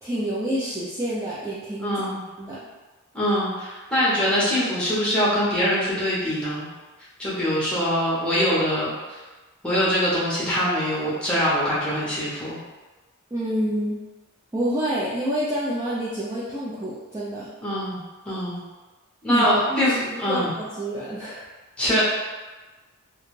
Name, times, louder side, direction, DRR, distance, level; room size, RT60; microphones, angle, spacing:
voice 1, 0.0-2.0 2.4-2.6 13.3-14.0 14.5-17.5 19.3-21.4, right 1 dB, 15° right, -10 dB, 0.3 m, -28 dB
voice 2, 1.8-2.2 3.1-6.7 7.2-9.2 9.6-12.6 17.6-18.0 18.3-18.6 19.2-20.5 21.8-22.0, equal, 5° left, -9 dB, 0.8 m, -23 dB
2.4 x 2.3 x 3.1 m, 1.2 s
head